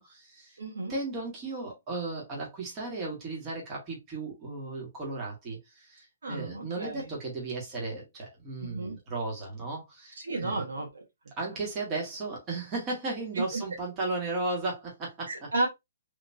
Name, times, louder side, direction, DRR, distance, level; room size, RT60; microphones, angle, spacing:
voice 1, 0.0-0.6 0.9-10.6 11.4-15.5, right 2 dB, 25° right, 1.9 m, -35 dB
voice 2, 0.6-0.9 6.2-7.1 8.6-9.0 10.2-11.0 13.3-13.6 15.3-15.7, right 2 dB, 90° right, 1.6 m, -32 dB
3.6 x 3.1 x 2.7 m
hypercardioid pair, 155°, 0 cm